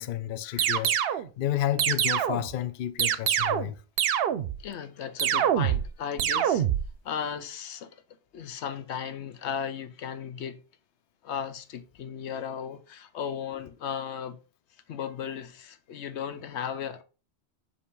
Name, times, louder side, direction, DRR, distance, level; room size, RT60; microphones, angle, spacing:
voice 1, 0.0-3.8, left 12 dB, 60° left, 0.6 m, -31 dB
sound 1, 0.6-1.3 1.8-2.5 3.0-3.7 4.0-4.6 5.2-5.9 6.2-6.9, right 9 dB, 65° right, 0.7 m, -25 dB
voice 2, 4.6-6.6 7.0-8.0 8.3-10.6 11.2-14.4 14.9-17.0, left 8 dB, 85° left, 1.0 m, -35 dB
7.1 x 2.9 x 5.2 m
omnidirectional pair, 1.1 m